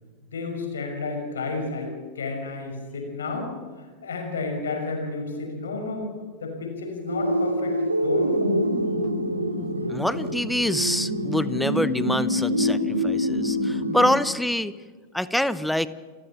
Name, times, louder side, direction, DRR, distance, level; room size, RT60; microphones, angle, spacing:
voice 1, 0.3-6.1 6.4-8.7, left 3 dB, 65° left, 3 dB, 5.8 m, -31 dB
sound 1, 7.1-14.1, equal, 80° right, 2.6 m, -25 dB
voice 2, 9.9-14.7 15.1-15.9, left 1 dB, ahead, 15 dB, 0.9 m, -25 dB
29.5 x 14.0 x 7.5 m, 1.5 s
figure-of-eight pair, 90°, 0 cm